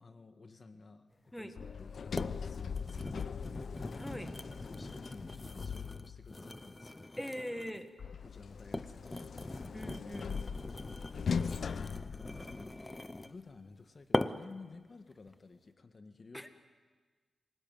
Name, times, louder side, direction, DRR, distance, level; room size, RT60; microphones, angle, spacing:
voice 1, 0.0-3.7 4.6-7.0 8.2-9.7 13.2-16.4, left 3 dB, 45° left, 8 dB, 1.6 m, -54 dB
sound 1, 1.4-1.5 2.2-2.4 2.7-7.9 8.5-13.4 14.1-14.6 15.1-15.3, left 2 dB, 20° left, 0.9 m, -41 dB
Sliding door, 1.5-6.4 8.0-12.9, left 6 dB, 65° left, 0.7 m, -40 dB
voice 2, 3.9-4.3 7.2-7.9 9.7-10.4 16.3-16.6, equal, 5° left, 8 dB, 1.8 m, -42 dB
28.5 x 19.0 x 9.4 m, 1.4 s
cardioid pair, 85°, 0 cm